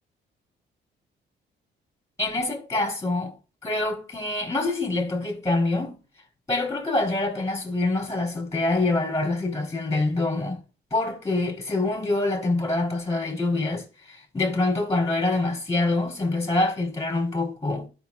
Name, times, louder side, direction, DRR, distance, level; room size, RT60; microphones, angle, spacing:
voice 1, 2.2-3.4 3.6-6.0 6.5-10.6 10.9-17.9, left 2 dB, 15° left, 3.9 m, -25 dB
13.0 x 6.0 x 2.5 m
cardioid pair, 90°, 20 cm